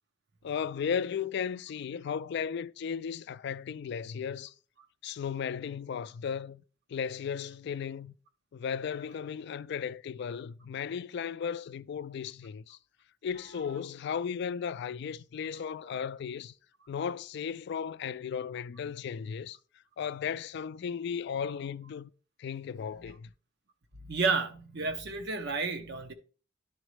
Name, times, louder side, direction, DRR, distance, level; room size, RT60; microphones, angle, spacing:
voice 1, 0.4-4.5 5.0-6.6 6.9-8.1 8.5-12.8 13.2-16.5 16.9-19.6 20.0-22.1 22.4-23.3, left 7 dB, 60° left, 0.3 m, -35 dB
voice 2, 24.0-26.1, right 4 dB, 60° right, 0.8 m, -31 dB
11.0 x 4.0 x 3.2 m
head